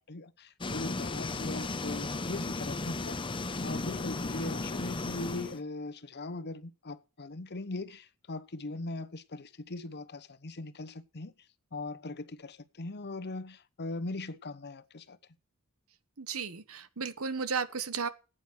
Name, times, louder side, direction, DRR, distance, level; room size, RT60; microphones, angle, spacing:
voice 1, 0.0-3.3 3.6-11.3 11.7-15.2, left 2 dB, 50° left, 1.0 m, -40 dB
sound 1, 0.6-5.6, left 2 dB, 25° left, 0.8 m, -35 dB
voice 2, 16.2-18.1, right 5 dB, 80° right, 1.2 m, -34 dB
15.0 x 9.0 x 6.4 m
head